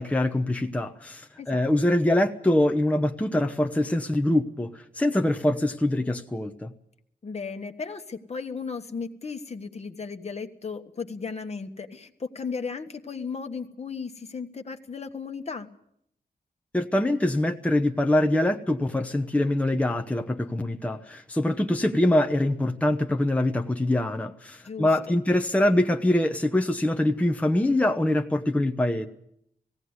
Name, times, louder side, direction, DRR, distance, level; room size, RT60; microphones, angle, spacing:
voice 1, 0.0-6.7 16.7-29.1, left 1 dB, 10° left, 5 dB, 0.9 m, -24 dB
voice 2, 7.2-15.7 24.6-25.2, left 5 dB, 45° left, 6 dB, 1.3 m, -35 dB
18.5 x 16.5 x 9.6 m, 0.73 s
wide cardioid pair, 110°, 16 cm